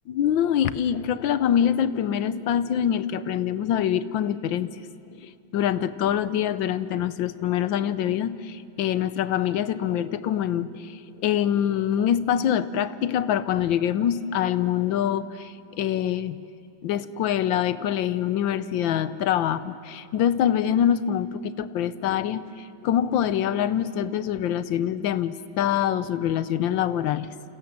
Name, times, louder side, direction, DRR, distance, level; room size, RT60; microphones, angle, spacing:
voice 1, 0.1-4.8 5.2-16.4 16.8-27.3, left 10 dB, 70° left, 15 dB, 1.4 m, -25 dB
29.0 x 27.5 x 7.4 m, 2.7 s
omnidirectional pair, 2.3 m